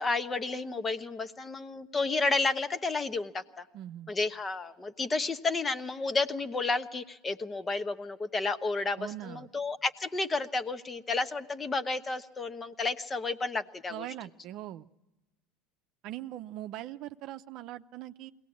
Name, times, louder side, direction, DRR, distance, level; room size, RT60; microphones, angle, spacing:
voice 1, 0.0-3.6 4.1-14.1, left 3 dB, 20° left, 11 dB, 1.0 m, -31 dB
voice 2, 3.7-4.1 9.0-9.5 13.9-14.9 16.0-18.3, right 13 dB, 60° right, 10 dB, 0.7 m, -41 dB
22.0 x 18.0 x 8.4 m, 1.0 s
supercardioid pair, 105°, 0 cm